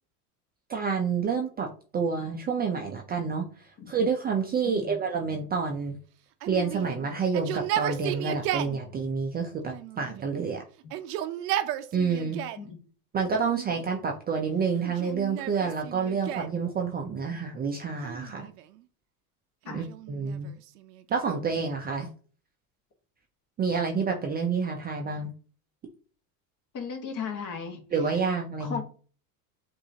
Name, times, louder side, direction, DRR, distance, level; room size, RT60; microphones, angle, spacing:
voice 1, 0.7-3.5 3.9-6.0 6.5-10.6 11.9-12.4 13.1-18.5 19.7-20.5 21.1-22.1 23.6-25.3 27.9-28.8, right 5 dB, 20° right, 2 dB, 0.5 m, -28 dB
voice 2, 4.7-5.0 12.6-12.8 19.6-19.9 26.7-27.8 28.6-28.8, left 6 dB, 40° left, 4 dB, 1.4 m, -36 dB
Yell, 6.4-8.8 9.7-10.4 10.8-12.7 13.4-14.1 14.8-16.6 18.0-18.8 19.7-21.4, right 12 dB, 80° right, 0.7 m, -34 dB
7.1 x 2.7 x 2.8 m, 0.41 s
supercardioid pair, 110°, 47 cm